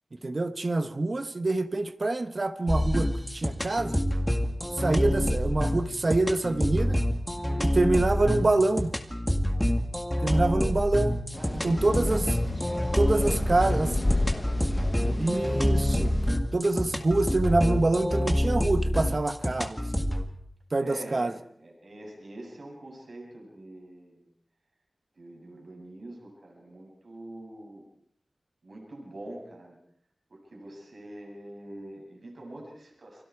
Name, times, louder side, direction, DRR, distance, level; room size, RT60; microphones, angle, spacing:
voice 1, 0.2-4.0 4.8-7.0 7.6-8.9 10.2-11.2 11.6-12.4 12.9-13.9 15.2-16.1 16.5-20.0 20.7-21.3, right 2 dB, 40° right, 1.3 m, -26 dB
sound 1, 2.7-20.2, equal, 5° left, 2.2 m, -27 dB
voice 2, 7.3-7.8 10.1-10.7 11.3-11.9 13.1-15.5 20.8-24.3 25.1-27.8 28.6-29.8 30.3-33.2, right 1 dB, 60° right, 7.6 m, -44 dB
sound 2, 11.3-16.4, left 2 dB, 25° left, 0.9 m, -31 dB
30.0 x 25.5 x 4.8 m
wide cardioid pair, 105°, 0 cm